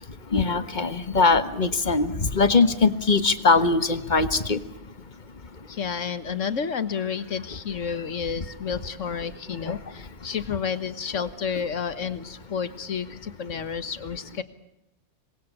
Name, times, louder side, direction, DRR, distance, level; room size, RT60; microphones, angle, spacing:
voice 1, 0.3-4.6 9.7-9.8 11.2-11.3, left 4 dB, 35° left, 12 dB, 1.4 m, -21 dB
voice 2, 5.7-14.4, left 6 dB, 65° left, 13 dB, 1.7 m, -30 dB
27.5 x 22.5 x 8.5 m, 0.86 s
omnidirectional pair, 1.4 m